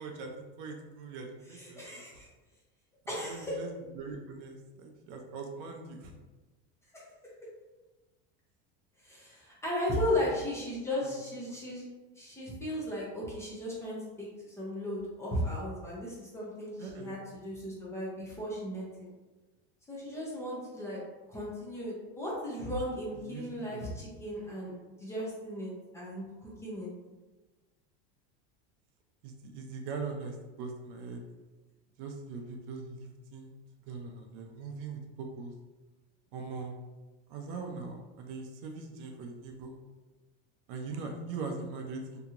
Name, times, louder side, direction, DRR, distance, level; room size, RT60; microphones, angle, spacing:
voice 1, 0.0-2.2 3.2-6.1 9.9-10.0 11.0-11.1 11.5-11.6 16.8-17.2 23.2-23.9 29.2-31.2 32.0-33.5 33.9-35.5 36.3-36.8 37.3-39.7 40.7-42.2, right 4 dB, 60° right, 3 dB, 0.5 m, -41 dB
voice 2, 1.5-2.3 3.1-3.6 9.0-11.8 12.2-19.1 19.9-21.0 21.3-24.7 25.0-26.9, left 1 dB, 10° left, -6 dB, 0.5 m, -36 dB
2.8 x 2.7 x 2.4 m, 1.2 s
cardioid pair, 155°, 32 cm